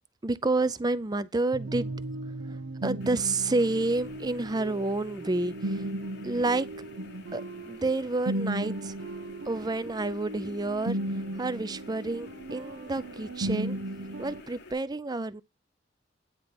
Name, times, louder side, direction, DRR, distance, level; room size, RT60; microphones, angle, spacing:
voice 1, 0.2-1.9 2.5-5.9 6.2-6.7 7.3-8.9 9.5-13.8 14.2-15.4, right 2 dB, 20° right, 0.5 m, -29 dB
sound 1, 1.5-14.4, right 1 dB, 75° right, 0.7 m, -36 dB
sound 2, 3.0-14.7, left 3 dB, 60° left, 1.0 m, -51 dB
9.7 x 3.3 x 5.9 m
head